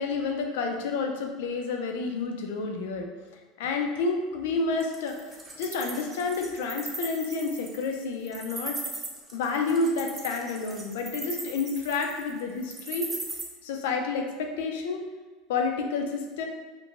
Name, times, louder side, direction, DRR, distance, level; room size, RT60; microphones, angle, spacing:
voice 1, 0.0-3.1 3.6-8.8 9.3-13.1 13.6-15.0 15.5-16.4, left 4 dB, 85° left, 3 dB, 0.4 m, -29 dB
Wild animals, 4.8-13.4, right 3 dB, 20° right, 0.5 m, -37 dB
2.9 x 2.1 x 2.4 m, 1.3 s
supercardioid pair, 120°, 0 cm